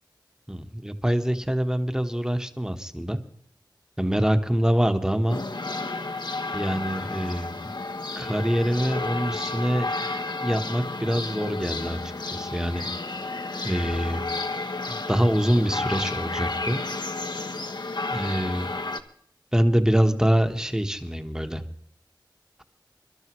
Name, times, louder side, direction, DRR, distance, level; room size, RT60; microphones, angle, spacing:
voice 1, 0.5-3.2 4.0-5.4 6.5-7.6 8.2-9.9 10.4-12.9 13.6-14.2 14.9-16.8 18.1-18.7 19.5-21.6, equal, 10° right, 7 dB, 1.2 m, -25 dB
sound 1, 5.3-19.0, left 3 dB, 60° left, 0.9 m, -31 dB
25.5 x 12.0 x 3.1 m, 0.65 s
wide cardioid pair, 40°, 8 cm